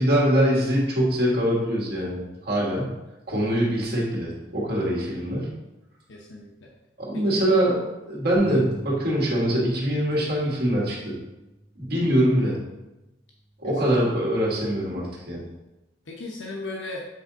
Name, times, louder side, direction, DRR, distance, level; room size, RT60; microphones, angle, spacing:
voice 1, 0.0-2.9 3.3-5.5 7.0-7.8 8.1-11.1 11.8-12.6 13.6-15.5, right 1 dB, 60° right, -4 dB, 2.0 m, -23 dB
voice 2, 6.1-6.7 7.1-7.4 13.6-13.7 16.1-17.0, left 2 dB, 85° left, -1 dB, 0.8 m, -36 dB
sound 1, 8.3-14.6, equal, 5° right, 2.1 m, -47 dB
7.8 x 3.5 x 4.0 m, 0.99 s
head